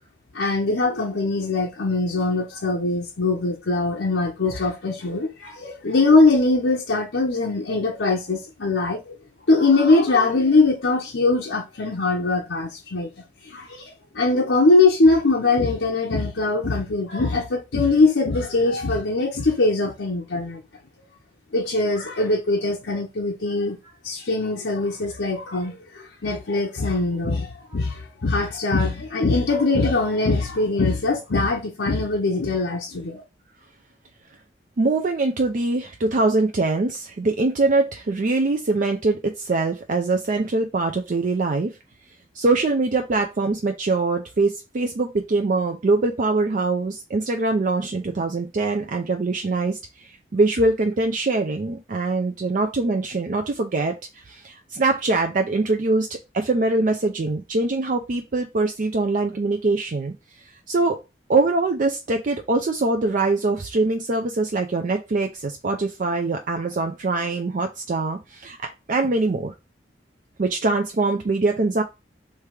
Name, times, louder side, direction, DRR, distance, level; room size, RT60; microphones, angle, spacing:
voice 1, 0.3-9.2 9.5-13.1 13.4-20.6 21.5-23.8 24.0-33.2, left 3 dB, 85° left, 0.8 m, -21 dB
voice 2, 34.8-41.7 42.3-54.0 54.3-60.1 60.7-61.0 61.3-68.6 68.9-69.5 70.4-71.8, right 3 dB, 45° right, 0.4 m, -23 dB
3.3 x 3.3 x 4.8 m
head